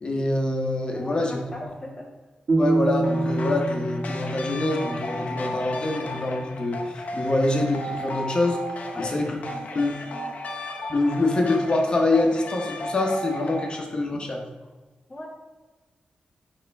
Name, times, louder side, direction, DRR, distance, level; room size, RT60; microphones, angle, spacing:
voice 1, 0.0-1.7 2.5-8.6 9.0-9.4 9.7-9.9 10.9-14.4, left 2 dB, 35° left, 1 dB, 1.1 m, -25 dB
voice 2, 0.9-2.1 8.9-9.6 10.0-10.3 15.1-15.3, left 1 dB, 15° left, -3 dB, 0.8 m, -38 dB
sound 1, 2.5-5.6, right 2 dB, 45° right, 1.7 m, -26 dB
sound 2, 3.0-13.8, left 1 dB, 60° left, 0.9 m, -35 dB
11.0 x 3.6 x 3.4 m, 1.3 s
wide cardioid pair, 180°, 3 cm